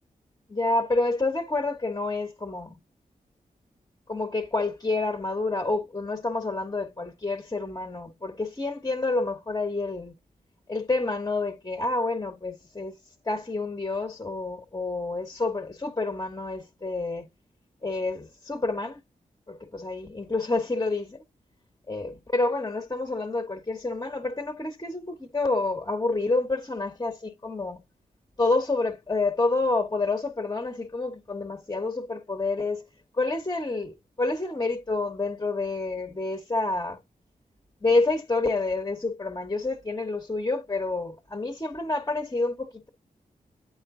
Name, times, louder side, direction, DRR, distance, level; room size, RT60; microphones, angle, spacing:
voice 1, 0.5-2.8 4.1-10.1 10.7-12.9 13.3-17.3 17.8-19.0 19.5-21.2 21.9-27.8 28.4-32.8 33.2-37.0 37.8-42.9, left 3 dB, 20° left, 1.2 m, -28 dB
8.7 x 3.9 x 3.7 m
cardioid pair, 60°, 16 cm